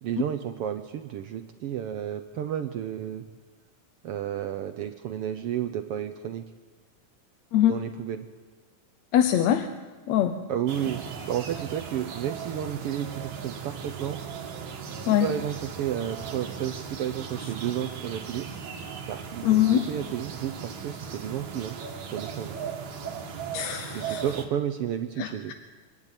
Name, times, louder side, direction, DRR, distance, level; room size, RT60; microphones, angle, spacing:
voice 1, 0.0-3.2 4.0-6.4 7.7-8.2 10.5-11.0 11.3-14.2 15.0-18.5 19.1-21.8 22.1-22.6 23.9-25.5, right 10 dB, 85° right, 8 dB, 1.3 m, -32 dB
voice 2, 9.1-9.7 10.1-10.4 15.1-15.3 19.4-19.8 23.5-24.2 25.2-25.5, left 11 dB, 70° left, 8 dB, 1.9 m, -23 dB
sound 1, 10.7-24.5, right 6 dB, 65° right, 3.0 m, -38 dB
24.5 x 12.0 x 9.0 m, 1.5 s
omnidirectional pair, 3.6 m